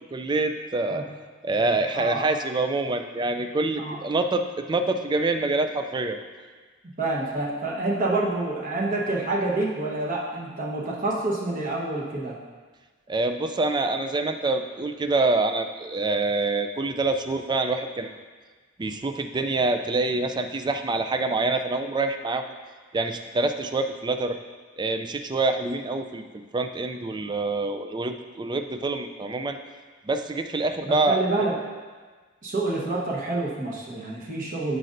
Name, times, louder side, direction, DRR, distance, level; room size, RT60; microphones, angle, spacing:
voice 1, 0.1-1.0 1.4-6.2 13.1-18.1 18.8-22.4 22.9-24.4 24.8-26.2 26.5-29.6 30.0-31.2, right 2 dB, 20° right, 7 dB, 0.4 m, -26 dB
voice 2, 1.9-2.2 3.8-4.0 7.0-12.4 30.8-31.5 32.4-34.8, right 2 dB, 40° right, -4 dB, 1.1 m, -27 dB
12.0 x 5.3 x 2.6 m, 1.4 s
head